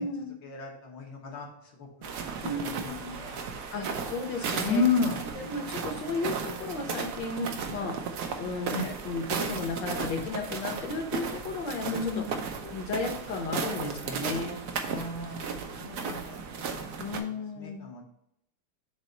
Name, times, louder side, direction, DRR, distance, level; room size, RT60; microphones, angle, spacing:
voice 1, 0.4-1.5 1.8-2.1 2.4-3.4 3.8-4.0 4.6-5.3 8.7-9.0 11.8-12.4 14.8-18.0, left 4 dB, 80° left, -1 dB, 2.3 m, -33 dB
sound 1, 2.0-17.2, right 5 dB, 65° right, 1.1 m, -35 dB
voice 2, 2.4-3.2 3.7-4.8 5.4-8.0 8.4-8.7 9.0-11.9 12.2-12.3 12.6-14.6 17.0-17.8, left 3 dB, 60° left, 3 dB, 1.7 m, -34 dB
7.3 x 3.1 x 5.2 m, 0.79 s
omnidirectional pair, 2.3 m